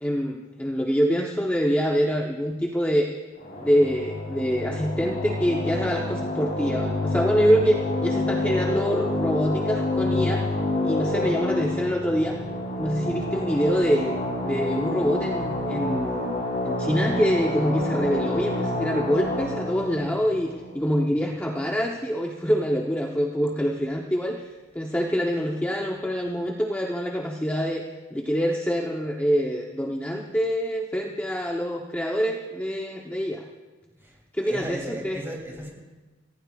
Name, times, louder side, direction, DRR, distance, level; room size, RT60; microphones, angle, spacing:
voice 1, 0.0-3.1 3.6-10.5 10.8-12.4 12.8-14.2 14.4-27.8 28.1-33.5 34.3-35.2, equal, 10° left, 0 dB, 0.8 m, -25 dB
sound 1, 3.4-21.5, left 2 dB, 50° left, 4.1 m, -28 dB
voice 2, 34.4-35.7, equal, 10° right, -1 dB, 2.9 m, -35 dB
28.0 x 15.5 x 2.4 m, 1.2 s
head